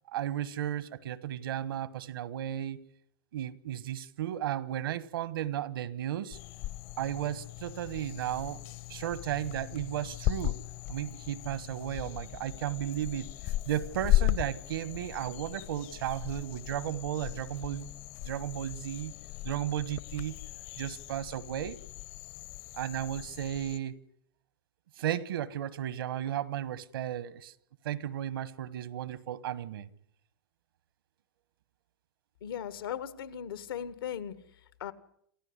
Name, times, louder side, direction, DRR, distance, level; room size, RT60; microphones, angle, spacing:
voice 1, 0.1-2.8 3.3-6.4 7.0-8.6 8.9-10.6 10.9-13.3 13.6-17.9 18.2-19.1 19.4-20.4 20.8-21.8 22.7-24.0 25.0-27.5 27.8-29.9, right 11 dB, 80° right, 1.4 m, -34 dB
sound 1, 6.3-23.8, left 16 dB, 45° left, 0.9 m, -36 dB
voice 2, 32.4-34.3 34.8-34.9, left 9 dB, 85° left, 1.9 m, -37 dB
27.5 x 14.5 x 9.7 m
supercardioid pair, 135°, 12 cm